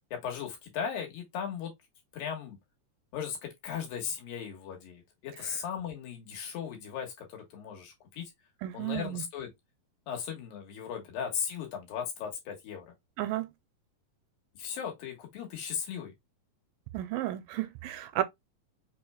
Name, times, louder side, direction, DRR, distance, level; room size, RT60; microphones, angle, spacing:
voice 1, 0.1-1.7 2.1-2.6 3.1-8.3 8.7-9.5 10.1-12.9 14.6-16.1, left 7 dB, 85° left, 3.1 m, -37 dB
voice 2, 8.6-9.2 13.2-13.5 16.9-18.2, right 14 dB, 80° right, 2.2 m, -33 dB
5.7 x 3.2 x 2.2 m
omnidirectional pair, 3.9 m